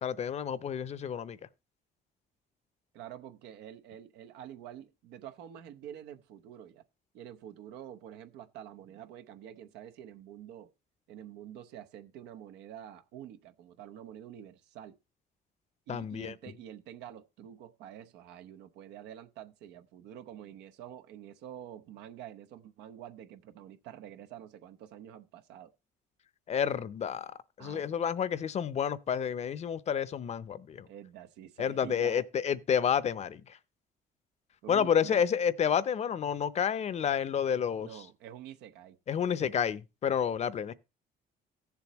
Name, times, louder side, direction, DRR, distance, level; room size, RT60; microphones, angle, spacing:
voice 1, 0.0-1.4 15.9-16.3 26.5-30.9 31.6-33.6 34.7-37.9 39.1-40.7, left 8 dB, 40° left, 0.6 m, -30 dB
voice 2, 2.9-6.8 7.1-10.7 11.1-15.0 15.9-25.7 27.6-28.0 30.9-32.2 34.6-35.2 37.8-39.0, right 10 dB, 90° right, 0.8 m, -47 dB
16.0 x 7.1 x 3.0 m
cardioid pair, 110°, 17 cm